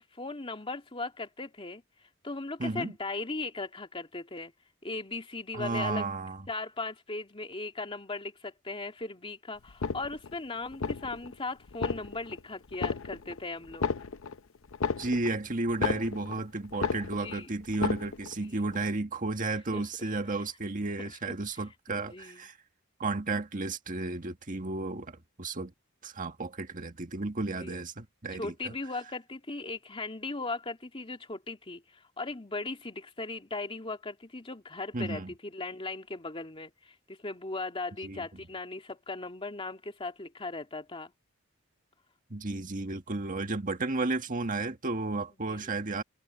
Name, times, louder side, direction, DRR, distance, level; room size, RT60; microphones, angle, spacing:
voice 1, 0.0-1.8 2.2-4.5 4.8-6.1 6.5-13.9 17.2-17.5 19.5-20.1 21.1-21.2 21.5-22.4 27.5-27.8 28.3-41.1 45.5-45.7, left 3 dB, 25° left, 2.4 m, -38 dB
voice 2, 2.6-2.9 5.5-6.4 15.0-22.5 23.0-25.7 26.0-28.7 34.9-35.3 38.0-38.2 42.3-46.0, right 3 dB, 40° right, 1.7 m, -33 dB
sound 1, 9.7-10.4 10.7-11.3 11.7-12.4 12.7-13.4 13.7-16.4 16.7-17.4 17.7-18.4 18.7-18.8, left 5 dB, 80° left, 0.7 m, -33 dB
head